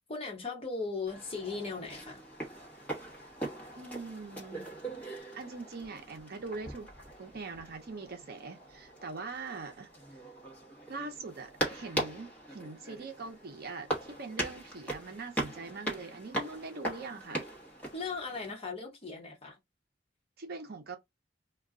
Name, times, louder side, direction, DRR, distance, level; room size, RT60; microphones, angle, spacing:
voice 1, 0.1-2.2 17.9-19.6, left 4 dB, 30° left, 1.0 m, -38 dB
sound 1, 1.1-18.5, right 1 dB, 10° left, 1.0 m, -40 dB
voice 2, 3.8-4.7 5.3-6.9 7.2-9.9 10.9-17.4 20.4-21.0, right 3 dB, 55° right, 0.7 m, -42 dB
2.3 x 2.2 x 3.6 m
head